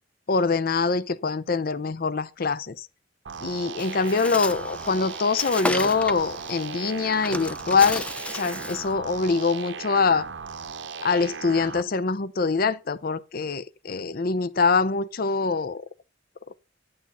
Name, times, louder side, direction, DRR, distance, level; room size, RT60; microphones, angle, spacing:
voice 1, 0.3-2.9 3.4-8.1 8.3-10.3 11.0-15.8, left 4 dB, 55° left, 0.6 m, -24 dB
sound 1, 3.3-11.8, right 5 dB, 80° right, 0.8 m, -37 dB
Bird, 3.8-8.9, left 1 dB, 5° left, 0.6 m, -34 dB
8.9 x 8.4 x 5.5 m
head